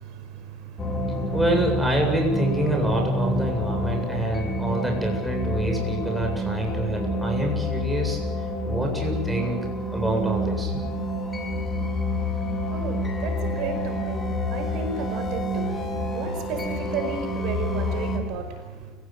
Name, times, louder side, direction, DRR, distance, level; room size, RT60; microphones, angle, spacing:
voice 1, 0.0-1.4 3.3-4.6 12.2-18.9, right 5 dB, 60° right, 5 dB, 5.2 m, -35 dB
sound 1, 0.8-18.2, left 1 dB, 20° left, 4.7 m, -28 dB
voice 2, 1.3-8.2 8.6-10.8, right 1 dB, 5° right, 0 dB, 7.9 m, -27 dB
29.5 x 17.0 x 7.9 m, 1.3 s
supercardioid pair, 125°, 0 cm